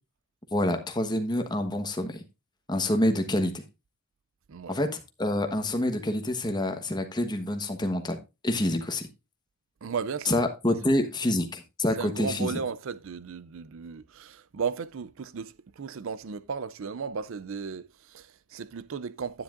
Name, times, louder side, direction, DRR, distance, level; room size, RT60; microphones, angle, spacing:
voice 1, 0.5-2.2 2.7-3.6 4.7-8.2 8.4-9.0 10.3-12.6, left 1 dB, 20° left, 1.2 m, -27 dB
voice 2, 9.8-10.4 10.7-10.8 12.0-19.4, right 6 dB, 65° right, 0.4 m, -35 dB
10.0 x 9.9 x 2.5 m
head